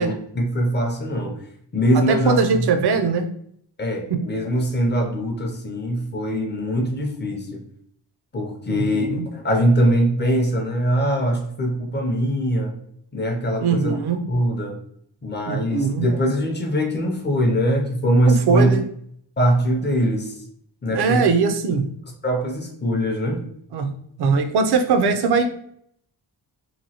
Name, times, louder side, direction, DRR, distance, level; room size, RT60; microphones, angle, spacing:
voice 1, 0.0-1.4 1.7-2.7 3.8-7.6 8.3-12.8 13.1-14.0 14.3-14.8 15.2-18.8 19.4-20.3 20.8-21.3 22.2-23.4, equal, 25° left, 2 dB, 0.4 m, -22 dB
voice 2, 2.1-3.3 4.1-4.2 8.7-9.2 13.6-14.2 15.5-16.1 18.2-18.8 20.9-21.8 23.7-23.9 24.2-25.5, right 5 dB, 65° right, 6 dB, 0.5 m, -20 dB
3.0 x 2.6 x 2.7 m, 0.68 s
wide cardioid pair, 165°, 43 cm